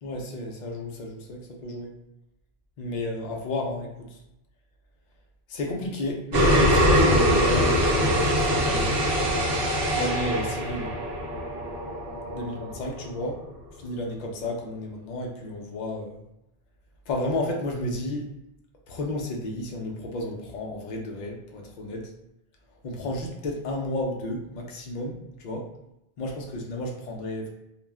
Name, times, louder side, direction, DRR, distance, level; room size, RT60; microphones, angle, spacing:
voice 1, 0.0-1.9 2.8-4.2 5.5-9.1 9.9-11.0 12.3-13.5 13.8-16.2 17.1-18.3 18.9-22.1 22.8-25.7 26.2-27.5, left 1 dB, 55° left, 0 dB, 0.6 m, -32 dB
sound 1, 6.3-13.2, equal, 80° right, 1.0 m, -23 dB
2.3 x 2.1 x 3.4 m, 0.85 s
omnidirectional pair, 1.0 m